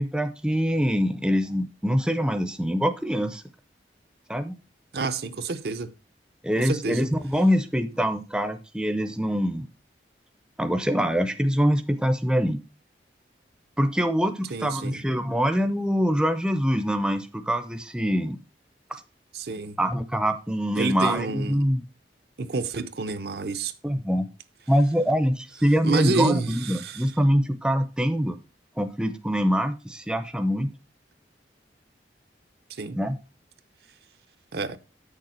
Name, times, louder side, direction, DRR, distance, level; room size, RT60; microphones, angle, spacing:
voice 1, 0.0-3.4 4.3-4.5 6.4-9.6 10.6-12.6 13.8-18.4 18.9-19.0 19.8-21.8 23.8-24.3 24.7-28.4 28.8-30.7 33.0-33.2, equal, 5° right, 0.6 m, -24 dB
voice 2, 4.9-5.9 6.6-7.1 14.5-15.0 19.3-19.8 20.8-21.7 22.4-23.7 25.8-27.1 32.7-33.0 34.5-34.8, right 3 dB, 60° right, 0.6 m, -29 dB
8.2 x 6.6 x 4.3 m
head